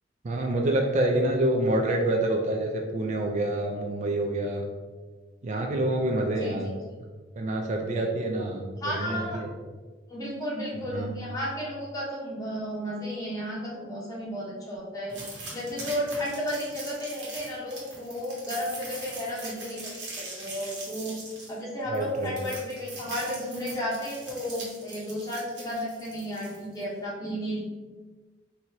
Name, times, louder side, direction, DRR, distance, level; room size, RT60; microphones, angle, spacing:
voice 1, 0.2-4.6 5.4-6.7 7.4-9.5 10.9-11.1 21.9-22.3, right 1 dB, 40° right, 2 dB, 0.4 m, -27 dB
voice 2, 8.8-9.4 10.1-15.2 15.5-19.8 20.2-21.2 21.5-27.6, equal, 20° left, -5 dB, 1.1 m, -33 dB
sound 1, 15.1-26.8, right 2 dB, 75° right, 1.2 m, -41 dB
4.4 x 2.7 x 2.8 m, 1.3 s
head